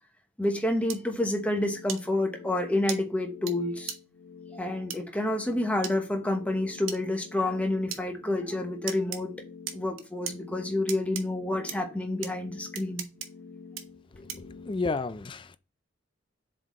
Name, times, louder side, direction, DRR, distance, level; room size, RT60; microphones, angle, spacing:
voice 1, 0.4-3.9 4.5-9.3 9.7-13.1, left 1 dB, 5° left, 1.0 m, -29 dB
sound 1, 0.9-1.0 1.9-2.0 2.9-3.0 3.5-3.6 3.9-4.0 4.9-5.0 5.8-5.9 6.9-7.0 7.9-8.0 8.9-9.2 9.7-10.3 10.9-11.2 11.7-11.8 12.2-12.3 12.7-13.3 13.8-13.9 14.3-14.5, right 9 dB, 90° right, 0.9 m, -35 dB
sound 2, 1.0-14.7, left 5 dB, 70° left, 1.2 m, -48 dB
voice 2, 14.1-15.6, left 3 dB, 25° left, 0.3 m, -32 dB
7.4 x 4.2 x 3.1 m
head